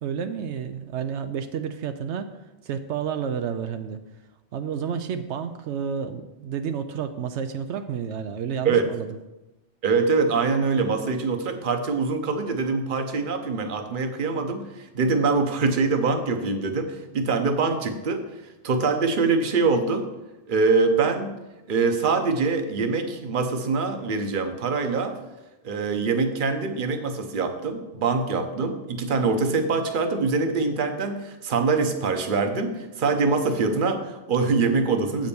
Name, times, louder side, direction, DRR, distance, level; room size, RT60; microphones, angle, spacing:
voice 1, 0.0-4.0 4.5-9.1, right 7 dB, 85° right, 8 dB, 0.9 m, -30 dB
voice 2, 9.8-18.2 18.6-20.1 20.5-21.3 21.7-25.1 25.6-35.3, right 4 dB, 50° right, 7 dB, 1.0 m, -24 dB
7.8 x 5.2 x 7.0 m, 1.0 s
omnidirectional pair, 1.2 m